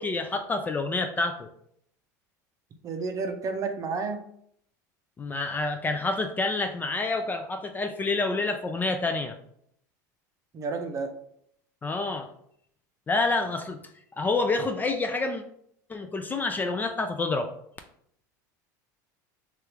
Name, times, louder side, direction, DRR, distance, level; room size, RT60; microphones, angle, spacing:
voice 1, 0.0-1.5 5.2-9.3 11.8-12.3 13.1-13.8 14.2-15.4 15.9-17.5, left 3 dB, 20° left, 6 dB, 0.3 m, -28 dB
voice 2, 2.8-4.2 10.5-11.1, right 4 dB, 35° right, 5 dB, 0.6 m, -31 dB
3.3 x 2.4 x 2.9 m, 0.68 s
supercardioid pair, 100°, 10 cm